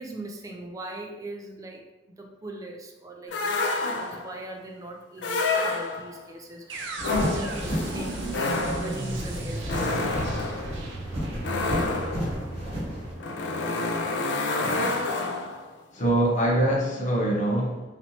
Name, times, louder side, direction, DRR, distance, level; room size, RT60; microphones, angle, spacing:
voice 1, 0.0-1.8 2.2-7.6 7.9-8.3 8.7-10.6, right 1 dB, 20° right, 1 dB, 0.4 m, -40 dB
sound 1, 3.3-4.4 5.2-6.2 7.0-15.7, left 3 dB, 70° left, 0.3 m, -29 dB
sound 2, 6.7-14.6, right 3 dB, 90° right, 0.5 m, -37 dB
sound 3, 7.0-13.1, equal, 35° right, 1.5 m, -33 dB
voice 2, 14.6-15.0 15.9-17.8, right 1 dB, 40° left, -2 dB, 0.8 m, -24 dB
4.2 x 3.0 x 2.7 m, 1.1 s
head